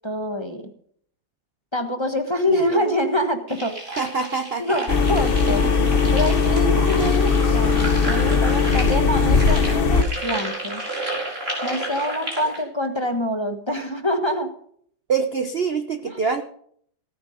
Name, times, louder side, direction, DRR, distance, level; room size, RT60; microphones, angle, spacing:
voice 1, 0.0-0.7 1.7-3.8 4.6-5.6 6.1-10.8 11.6-14.5 16.1-16.2, equal, 15° left, 5 dB, 1.2 m, -25 dB
voice 2, 2.5-2.9 4.0-4.8 5.5-6.0 15.1-16.4, right 5 dB, 45° right, 8 dB, 0.8 m, -26 dB
sound 1, 3.5-12.6, right 1 dB, 30° right, 5.0 m, -32 dB
sound 2, 4.9-10.0, left 4 dB, 45° left, 0.8 m, -19 dB
17.5 x 9.5 x 5.1 m, 0.63 s
omnidirectional pair, 2.1 m